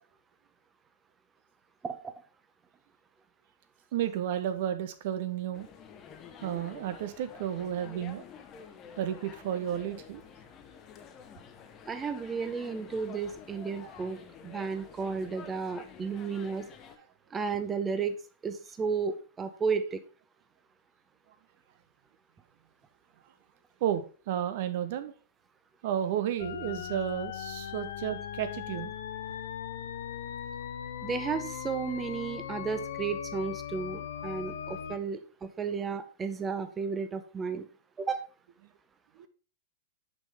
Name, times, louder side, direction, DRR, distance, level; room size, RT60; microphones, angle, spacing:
voice 1, 3.9-5.7 6.4-8.2 9.0-10.2 23.8-25.1 25.8-28.9 39.2-39.3, right 10 dB, 55° right, 11 dB, 0.6 m, -32 dB
sound 1, 5.5-17.0, left 7 dB, 30° left, 0.9 m, -49 dB
voice 2, 11.9-16.6 17.3-18.2 18.4-20.0 31.0-37.6 38.0-38.2, right 5 dB, 20° right, 10 dB, 0.7 m, -33 dB
sound 2, 26.4-35.0, left 10 dB, 65° left, 0.5 m, -39 dB
6.0 x 5.5 x 3.5 m, 0.37 s
hypercardioid pair, 105°, 0 cm